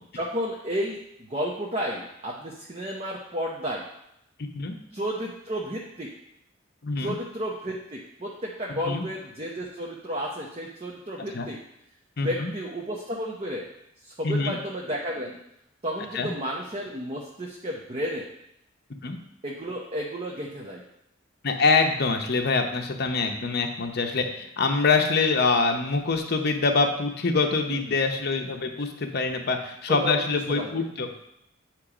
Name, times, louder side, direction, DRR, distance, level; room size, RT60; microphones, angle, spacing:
voice 1, 0.1-3.9 4.9-6.1 7.0-11.6 12.2-13.7 14.0-15.4 15.8-18.3 19.4-20.8 27.7-28.0 29.9-30.9, equal, 30° right, -2 dB, 0.7 m, -32 dB
voice 2, 6.8-7.2 8.8-9.1 11.3-11.5 12.2-12.5 14.2-14.6 16.1-16.3 19.0-19.2 21.4-31.1, left 4 dB, 50° left, 4 dB, 0.7 m, -25 dB
8.3 x 3.0 x 4.9 m, 0.82 s
head